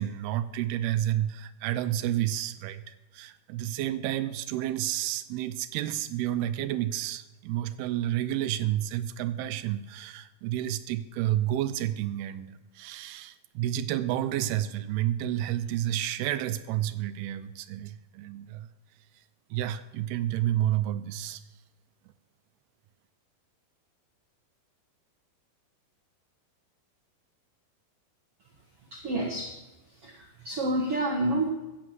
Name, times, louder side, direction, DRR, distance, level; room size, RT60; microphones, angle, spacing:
voice 1, 0.0-18.7 19.2-19.3 19.5-21.4, right 12 dB, 80° right, 13 dB, 2.5 m, -30 dB
voice 2, 28.8-29.6 29.9-31.5, right 1 dB, 55° right, 1 dB, 1.6 m, -29 dB
15.0 x 8.7 x 7.8 m, 1.1 s
omnidirectional pair, 4.7 m